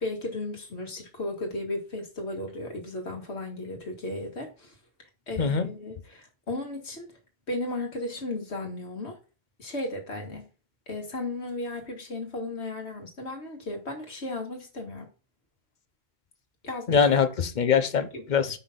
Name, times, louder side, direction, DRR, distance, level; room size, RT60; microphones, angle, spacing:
voice 1, 0.0-4.7 5.3-7.1 7.5-9.2 9.6-10.5 10.9-15.1 16.6-17.1 18.1-18.3, left 2 dB, 75° left, 2.0 m, -35 dB
voice 2, 5.4-5.7 16.9-18.6, left 6 dB, 50° left, 0.8 m, -23 dB
5.7 x 5.5 x 3.8 m
omnidirectional pair, 1.1 m